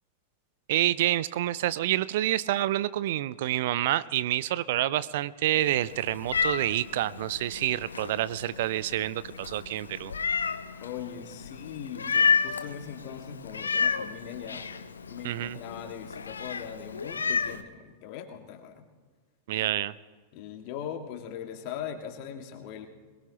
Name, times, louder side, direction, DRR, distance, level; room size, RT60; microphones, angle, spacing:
voice 1, 0.7-10.1 15.2-15.6 19.5-19.9, right 14 dB, 55° right, 18 dB, 0.4 m, -28 dB
Meow, 5.6-17.6, left 5 dB, 70° left, 0.7 m, -31 dB
voice 2, 10.8-14.6 15.1-18.9 19.6-19.7 20.3-22.9, left 8 dB, 45° left, 5 dB, 2.0 m, -40 dB
22.0 x 22.0 x 3.0 m, 1.5 s
figure-of-eight pair, 90°, 0 cm